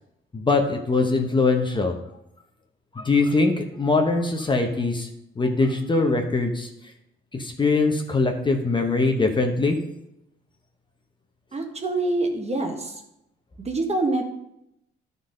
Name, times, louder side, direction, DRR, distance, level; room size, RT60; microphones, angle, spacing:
voice 1, 0.3-2.0 2.9-5.1 5.4-6.7 7.3-9.8, left 3 dB, 25° left, 3 dB, 1.0 m, -22 dB
voice 2, 11.5-13.0 13.6-14.2, right 2 dB, 30° right, 3 dB, 1.5 m, -25 dB
11.5 x 4.1 x 5.2 m, 0.83 s
cardioid pair, 90°, 20 cm